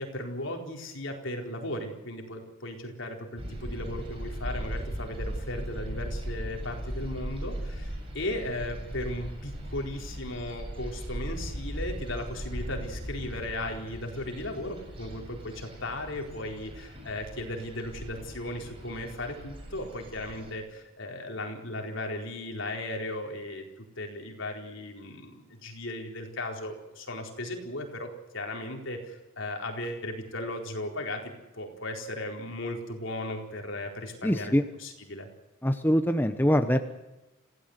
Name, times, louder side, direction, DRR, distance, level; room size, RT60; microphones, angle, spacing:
voice 1, 0.0-34.5 34.8-35.3, left 1 dB, 60° left, 2 dB, 4.4 m, -36 dB
sound 1, 3.4-20.5, equal, 25° right, 7.1 m, -38 dB
voice 2, 34.2-34.6 35.6-36.8, equal, 10° left, 8 dB, 0.9 m, -23 dB
27.0 x 16.5 x 8.1 m, 1.0 s
head